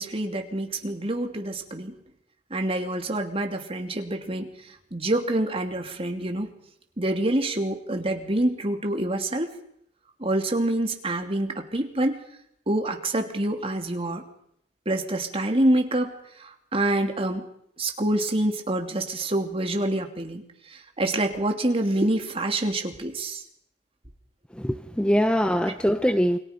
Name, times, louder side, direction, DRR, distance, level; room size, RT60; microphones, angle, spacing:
voice 1, 0.0-1.9 2.5-4.5 4.9-6.5 7.0-9.5 10.2-12.2 12.7-14.2 14.8-16.1 16.4-17.4 17.8-20.4 20.7-23.4, right 1 dB, 35° right, 4 dB, 2.9 m, -26 dB
voice 2, 24.6-26.4, equal, 5° left, 9 dB, 0.8 m, -23 dB
29.0 x 23.0 x 5.3 m, 0.70 s
head